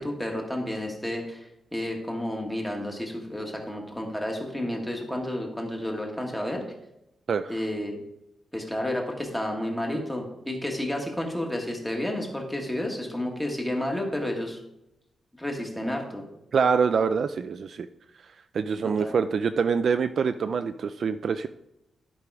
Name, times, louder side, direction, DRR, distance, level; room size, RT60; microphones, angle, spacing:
voice 1, 0.0-6.6 7.5-8.0 8.5-14.6 15.4-16.3 18.8-19.1, left 1 dB, 5° left, 1 dB, 1.5 m, -31 dB
voice 2, 16.5-17.9 18.5-21.5, right 6 dB, 50° right, 10 dB, 0.3 m, -25 dB
11.5 x 5.3 x 4.7 m, 0.86 s
wide cardioid pair, 175°, 0 cm